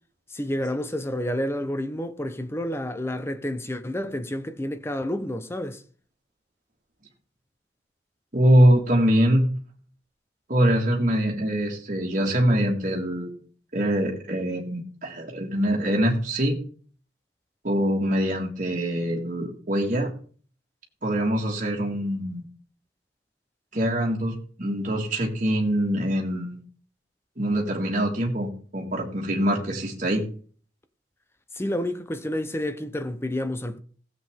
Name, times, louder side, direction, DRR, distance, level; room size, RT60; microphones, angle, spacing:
voice 1, 0.3-5.8 31.5-33.8, left 1 dB, 15° left, 0.8 m, -29 dB
voice 2, 8.3-9.5 10.5-13.4 13.7-16.6 17.6-20.1 21.0-22.4 23.7-26.6 27.4-30.2, equal, 45° right, 1.9 m, -23 dB
16.0 x 7.8 x 3.6 m
head